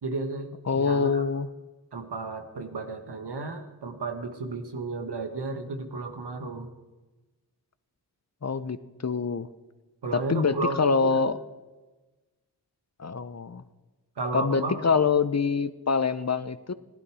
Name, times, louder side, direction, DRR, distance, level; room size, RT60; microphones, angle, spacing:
voice 1, 0.0-1.2 1.9-6.7 10.0-11.2 14.2-14.8, right 3 dB, 85° right, 6 dB, 1.5 m, -33 dB
voice 2, 0.7-1.5 8.4-8.8 9.0-9.5 10.1-11.4 13.0-13.6 14.3-16.7, left 5 dB, 40° left, 14 dB, 0.8 m, -25 dB
15.5 x 12.0 x 4.9 m, 1.2 s
cardioid pair, 40°, 39 cm